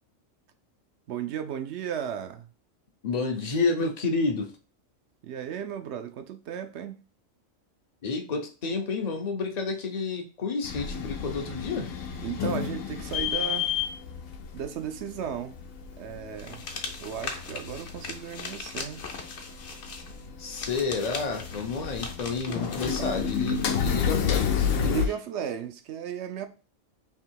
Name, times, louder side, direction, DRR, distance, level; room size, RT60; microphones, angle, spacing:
voice 1, 1.1-2.5 5.2-7.0 12.2-13.7 14.5-15.6 16.0-16.7 17.0-19.0 22.5-22.7 23.0-23.3 24.7-26.5, right 9 dB, 65° right, 0.8 m, -35 dB
voice 2, 3.0-4.5 8.0-11.9 20.4-25.0, left 4 dB, 40° left, 0.6 m, -30 dB
sound 1, 10.6-25.1, left 7 dB, 80° left, 1.0 m, -31 dB
sound 2, 16.4-23.9, left 4 dB, 60° left, 1.1 m, -40 dB
3.5 x 2.9 x 4.5 m
omnidirectional pair, 1.4 m